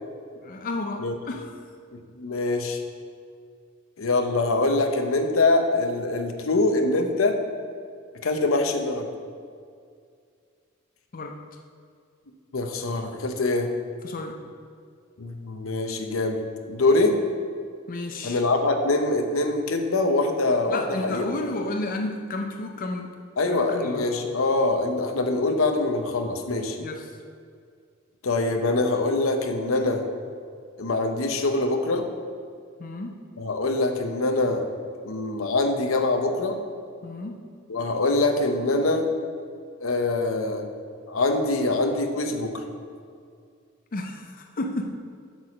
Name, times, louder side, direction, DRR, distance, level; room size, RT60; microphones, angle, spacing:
voice 1, 0.4-1.5 11.1-11.4 14.0-14.4 17.9-18.4 20.7-23.1 23.5-24.1 26.8-27.2 32.8-33.2 37.0-37.4 43.9-44.9, left 2 dB, 45° left, 3 dB, 0.6 m, -32 dB
voice 2, 1.9-2.8 4.0-7.4 8.2-9.1 12.5-13.7 15.2-16.4 16.7-17.2 18.2-21.3 23.4-26.8 28.2-30.0 30.8-32.1 33.4-34.7 35.0-36.6 37.7-39.1 39.8-40.7 41.1-42.6, left 2 dB, 85° left, 5 dB, 0.8 m, -24 dB
8.2 x 4.8 x 6.3 m, 2.2 s
head